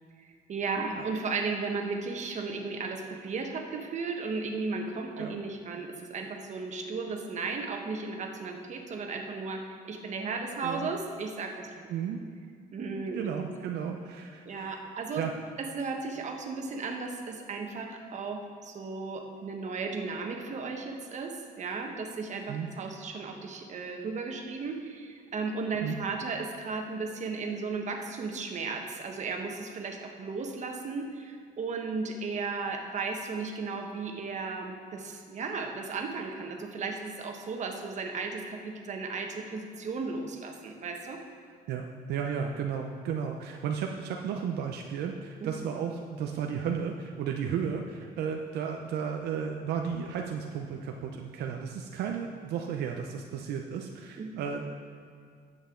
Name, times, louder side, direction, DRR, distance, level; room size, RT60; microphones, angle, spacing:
voice 1, 0.2-11.7 12.7-13.4 14.4-15.2 15.6-41.2 45.4-45.7 54.2-54.5, right 4 dB, 45° right, 3 dB, 1.3 m, -35 dB
voice 2, 11.9-12.2 13.1-14.8 15.2-15.3 22.5-22.7 25.8-26.0 41.7-54.6, right 7 dB, 75° right, 2 dB, 0.7 m, -34 dB
12.5 x 7.9 x 3.8 m, 2.1 s
cardioid pair, 110°, 17 cm